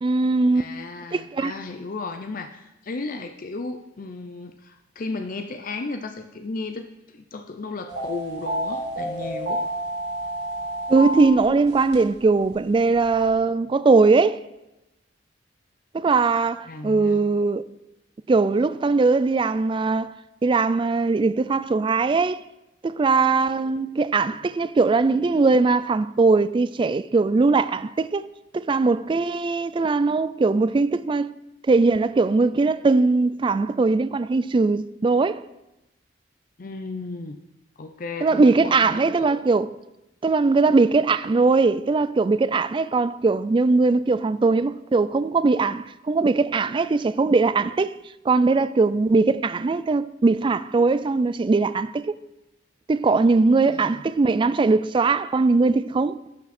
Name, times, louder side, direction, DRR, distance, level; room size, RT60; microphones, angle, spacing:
voice 1, 0.0-0.7 1.1-1.5 10.9-14.4 15.9-17.6 18.3-20.1 20.4-22.4 22.8-28.3 28.5-31.3 31.7-35.4 38.2-39.7 40.2-47.9 48.3-52.1 52.9-56.2, right 3 dB, 25° right, 0.3 m, -20 dB
voice 2, 0.5-6.9 7.1-9.6 16.7-17.2 36.6-37.4 37.8-39.2 53.7-54.0, left 3 dB, 50° left, 0.6 m, -34 dB
sound 1, 7.9-12.1 12.4-12.5 12.9-13.2, right 1 dB, 65° right, 2.4 m, -29 dB
12.0 x 5.9 x 4.3 m
head